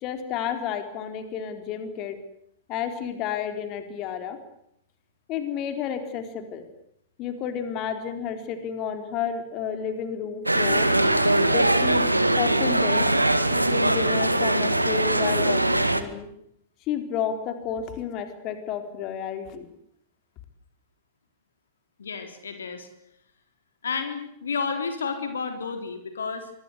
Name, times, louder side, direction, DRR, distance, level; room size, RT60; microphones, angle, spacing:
voice 1, 0.0-2.2 2.7-4.4 5.3-6.7 7.2-10.9 11.5-12.1 12.4-13.1 13.5-16.3 16.9-19.7, left 8 dB, 35° left, 8 dB, 4.2 m, -31 dB
sound 1, 10.5-16.0, right 1 dB, 90° right, 2.0 m, -21 dB
voice 2, 22.0-22.9 23.8-26.5, left 5 dB, 70° left, 7 dB, 3.8 m, -31 dB
26.0 x 22.5 x 8.2 m, 0.75 s
figure-of-eight pair, 100°, 0 cm